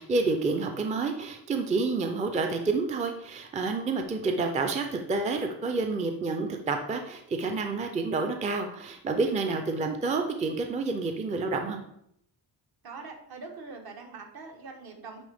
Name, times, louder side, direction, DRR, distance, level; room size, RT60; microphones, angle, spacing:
voice 1, 0.0-11.8, right 3 dB, 20° right, 4 dB, 0.4 m, -29 dB
voice 2, 12.8-15.2, right 4 dB, 60° right, 2 dB, 1.2 m, -43 dB
9.2 x 3.3 x 3.4 m, 0.73 s
wide cardioid pair, 170°, 41 cm